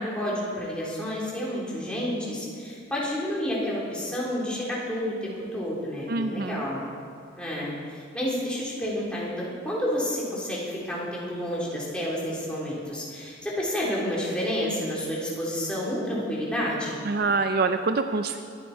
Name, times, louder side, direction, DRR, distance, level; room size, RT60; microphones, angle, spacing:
voice 1, 0.0-6.9 7.4-17.0, equal, 5° left, -6 dB, 3.6 m, -30 dB
voice 2, 6.1-6.6 17.1-18.5, right 3 dB, 50° right, 8 dB, 0.5 m, -25 dB
22.5 x 10.5 x 4.4 m, 2.3 s
head